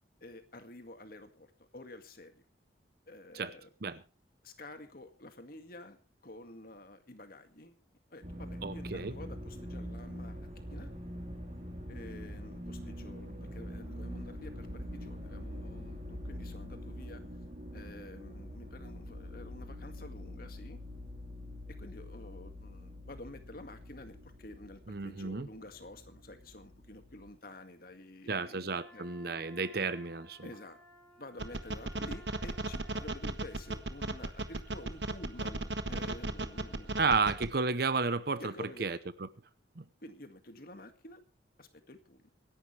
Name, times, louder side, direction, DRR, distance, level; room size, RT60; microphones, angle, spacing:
voice 1, 0.2-2.4 3.1-3.7 4.4-7.8 8.1-10.4 10.7-10.9 11.9-17.2 17.7-20.8 21.7-29.1 30.4-30.8 31.2-37.1 38.4-39.0 40.0-41.2 41.6-42.3, left 1 dB, 50° left, 2.0 m, -50 dB
sound 1, 8.2-27.2, equal, 35° right, 4.1 m, -44 dB
voice 2, 8.6-9.1 24.9-25.5 28.3-30.4 37.0-38.5 38.8-39.0 39.8-39.9, right 4 dB, 55° right, 0.8 m, -32 dB
Wind instrument woodwind instrument, 28.7-33.2, equal, 5° left, 5.1 m, -57 dB
sound 2, 31.4-37.5, right 2 dB, 75° right, 1.4 m, -35 dB
25.5 x 11.5 x 3.3 m
head